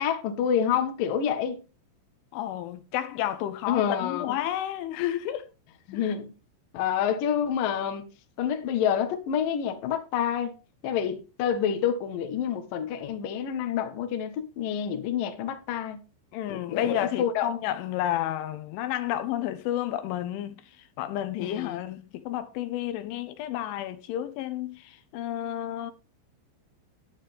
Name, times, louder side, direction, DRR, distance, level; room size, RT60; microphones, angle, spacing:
voice 1, 0.0-1.6 3.7-4.4 5.9-6.3 6.7-8.0 8.4-10.5 10.8-16.0 16.5-17.5 21.4-21.8, left 8 dB, 65° left, 2.3 m, -28 dB
voice 2, 2.3-5.5 5.9-6.1 16.3-20.6 21.0-25.9, left 12 dB, 80° left, 3.2 m, -31 dB
11.0 x 10.0 x 3.4 m
omnidirectional pair, 5.6 m